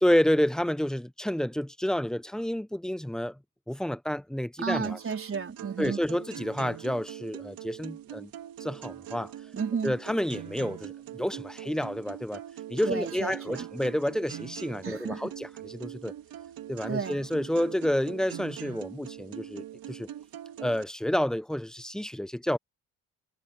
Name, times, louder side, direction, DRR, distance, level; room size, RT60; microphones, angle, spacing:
voice 1, 0.0-3.4 3.7-5.0 5.8-8.3 8.6-9.3 9.8-12.4 12.7-16.1 16.7-20.1 20.6-22.6, left 1 dB, ahead, 0.9 m, -29 dB
voice 2, 4.6-6.0 9.5-9.9 12.9-13.7 14.8-15.3 16.9-17.2, right 6 dB, 35° right, 4.2 m, -32 dB
sound 1, 4.8-20.8, right 11 dB, 70° right, 3.8 m, -42 dB
supercardioid pair, 75°, 36 cm